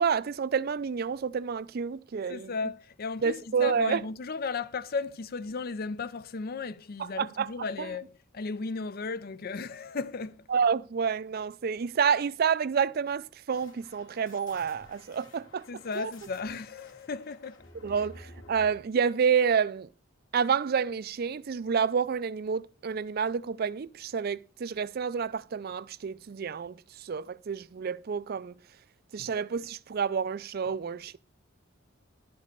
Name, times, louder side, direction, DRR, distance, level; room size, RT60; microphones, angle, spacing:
voice 1, 0.0-2.5 3.2-4.0 7.0-7.5 7.8-7.9 10.5-15.7 16.0-16.1 17.8-19.9 20.3-28.5 29.1-31.2, right 6 dB, 50° right, 0.4 m, -29 dB
voice 2, 2.3-10.4 15.7-17.6 29.2-29.3, left 4 dB, 45° left, 0.5 m, -35 dB
sound 1, 13.5-18.8, left 2 dB, 65° left, 2.4 m, -53 dB
11.5 x 5.2 x 6.7 m
head